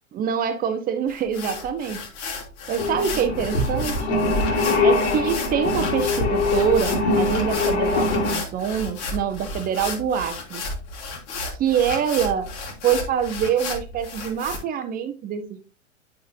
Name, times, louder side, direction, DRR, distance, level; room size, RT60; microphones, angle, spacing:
voice 1, 0.1-2.0 2.7-4.2 4.8-10.6 11.6-12.5 12.8-15.6, right 8 dB, 25° right, 1.0 m, -25 dB
sound 1, 1.1-14.6, left 3 dB, 40° left, 1.9 m, -33 dB
sound 2, 2.8-8.4, left 3 dB, 55° left, 2.1 m, -23 dB
9.3 x 5.4 x 2.7 m
figure-of-eight pair, 100°, 38 cm